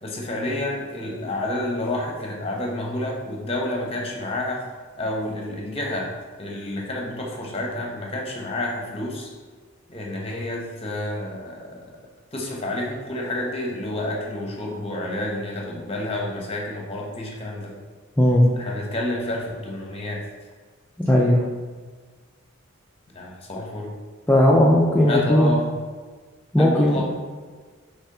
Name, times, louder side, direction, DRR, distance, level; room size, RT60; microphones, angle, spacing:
voice 1, 0.0-4.7 5.0-6.1 6.4-9.3 9.9-11.8 12.3-17.8 18.5-20.2 23.1-23.9 25.0-25.7 26.6-27.1, left 1 dB, 30° left, -1 dB, 0.7 m, -29 dB
voice 2, 21.0-21.4 24.3-25.5 26.5-27.0, left 1 dB, 10° left, -4 dB, 0.3 m, -17 dB
5.6 x 3.3 x 2.7 m, 1.5 s
head